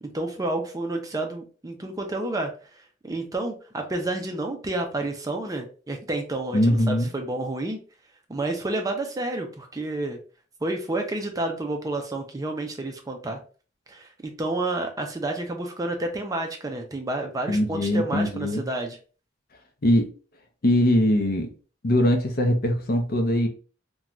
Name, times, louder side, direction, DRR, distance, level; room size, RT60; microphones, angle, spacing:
voice 1, 0.0-2.5 3.0-7.8 8.3-10.2 10.6-13.4 13.9-19.0, right 2 dB, 20° right, 0.4 m, -30 dB
voice 2, 6.5-7.1 17.5-18.6 19.8-20.1 20.6-21.5 21.8-23.5, left 1 dB, 50° left, 0.6 m, -21 dB
2.5 x 2.2 x 3.0 m
head